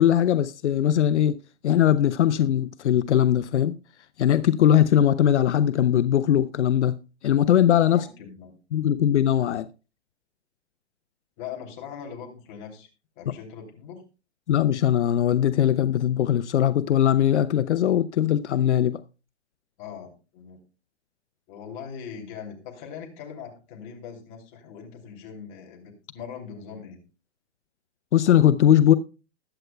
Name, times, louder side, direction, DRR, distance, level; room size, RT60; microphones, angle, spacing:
voice 1, 0.0-1.3 1.6-3.7 4.2-6.9 7.2-8.1 8.7-9.7 14.5-19.0 28.1-28.9, left 10 dB, 80° left, 0.7 m, -20 dB
voice 2, 7.9-8.5 11.4-12.9 13.2-14.0 19.8-20.6 21.5-27.0, left 7 dB, 30° left, 3.0 m, -41 dB
20.5 x 8.0 x 2.2 m
hypercardioid pair, 155°, 34 cm